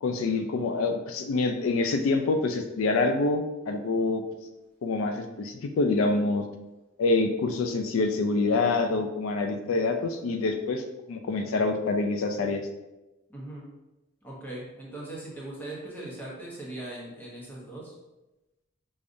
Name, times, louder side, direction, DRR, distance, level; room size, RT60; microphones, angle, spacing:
voice 1, 0.0-4.2 4.8-6.5 7.0-10.8 11.1-12.6, left 3 dB, 80° left, 5 dB, 0.3 m, -26 dB
voice 2, 13.3-13.7 14.2-17.9, right 1 dB, 10° left, -5 dB, 0.8 m, -40 dB
5.0 x 2.3 x 2.6 m, 1.0 s
head